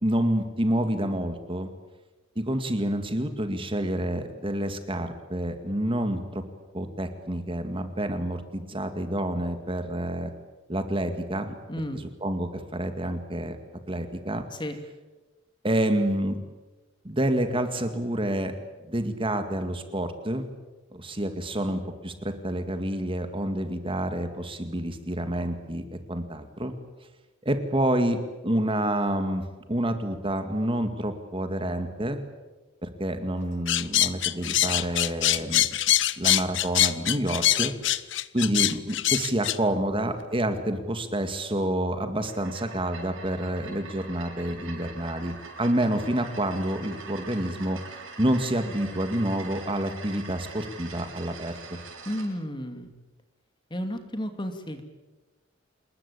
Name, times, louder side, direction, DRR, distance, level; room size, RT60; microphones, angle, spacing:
voice 1, 0.0-1.7 2.4-6.4 6.7-10.3 10.7-11.5 11.9-13.6 13.9-14.4 15.6-16.4 17.0-18.5 18.9-20.5 20.9-26.8 27.4-32.2 32.8-35.7 36.2-37.7 38.3-51.8, right 1 dB, 25° right, 8 dB, 2.2 m, -28 dB
voice 2, 11.7-12.0 14.5-14.8 52.0-52.9 53.7-54.8, equal, 25° left, 7 dB, 2.6 m, -32 dB
sound 1, 33.7-39.6, left 14 dB, 65° left, 0.9 m, -23 dB
sound 2, 42.2-52.3, right 4 dB, 85° right, 6.7 m, -44 dB
27.0 x 21.5 x 8.7 m, 1.1 s
head